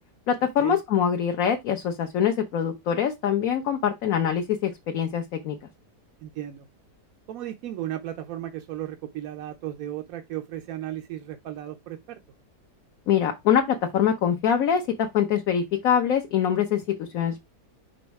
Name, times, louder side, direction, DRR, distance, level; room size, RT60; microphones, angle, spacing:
voice 1, 0.3-5.6 13.1-17.4, left 8 dB, 60° left, 1.2 m, -24 dB
voice 2, 6.2-6.7 7.3-12.2, right 12 dB, 65° right, 1.0 m, -35 dB
5.3 x 4.0 x 4.6 m
omnidirectional pair, 1.7 m